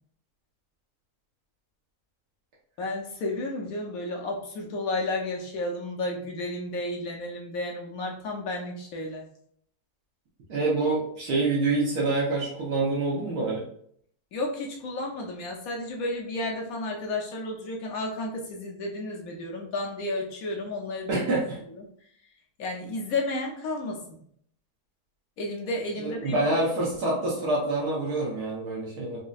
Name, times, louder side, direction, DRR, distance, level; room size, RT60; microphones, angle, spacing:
voice 1, 2.8-9.2 14.3-21.2 22.6-24.2 25.4-26.6, left 2 dB, 70° left, 0 dB, 1.1 m, -32 dB
voice 2, 10.5-13.6 21.1-21.6 26.0-29.2, right 2 dB, 80° right, -5 dB, 1.5 m, -26 dB
4.1 x 2.6 x 2.3 m, 0.64 s
omnidirectional pair, 1.7 m